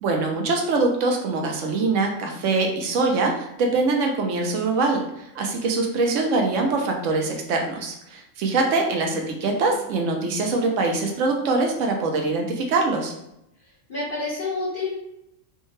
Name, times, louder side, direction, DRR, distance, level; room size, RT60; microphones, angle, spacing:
voice 1, 0.0-13.1, right 3 dB, 75° right, 2 dB, 1.0 m, -23 dB
voice 2, 8.9-9.3 13.9-14.9, left 3 dB, 45° left, -12 dB, 1.5 m, -29 dB
3.5 x 2.2 x 3.1 m, 0.81 s
omnidirectional pair, 1.3 m